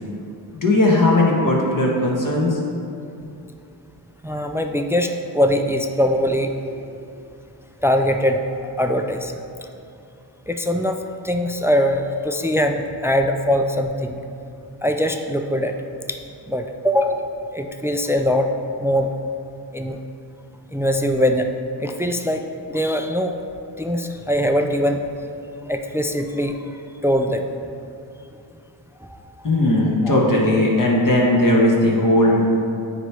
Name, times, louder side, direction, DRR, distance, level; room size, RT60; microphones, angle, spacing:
voice 1, 0.6-2.6 29.4-32.5, left 1 dB, 45° left, -3 dB, 1.5 m, -17 dB
voice 2, 4.2-6.5 7.8-8.4 8.8-9.3 10.5-11.0 11.2-14.2 14.8-15.7 16.1-16.2 16.5-17.2 17.5-18.5 18.8-19.1 19.7-20.0 20.7-21.5 21.8-22.4 22.7-23.3 23.8-25.0 25.7-26.6 27.0-27.5 29.0-29.5 30.0-30.2, equal, 5° right, 5 dB, 0.3 m, -21 dB
9.1 x 3.1 x 4.7 m, 2.6 s
cardioid pair, 60°, 43 cm